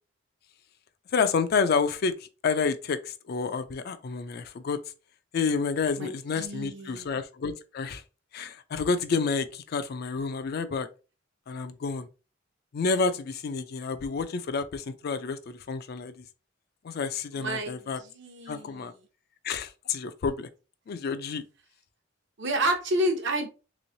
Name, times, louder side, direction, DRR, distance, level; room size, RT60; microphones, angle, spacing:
voice 1, 1.1-4.8 5.3-8.0 8.3-10.9 11.5-12.1 12.7-16.3 16.8-18.0 18.5-18.9 19.4-20.5 20.9-21.4, left 5 dB, 50° left, 0.4 m, -29 dB
voice 2, 6.0-7.2 17.3-19.0 22.4-23.5, right 1 dB, 60° right, 0.8 m, -30 dB
3.4 x 3.0 x 2.6 m
head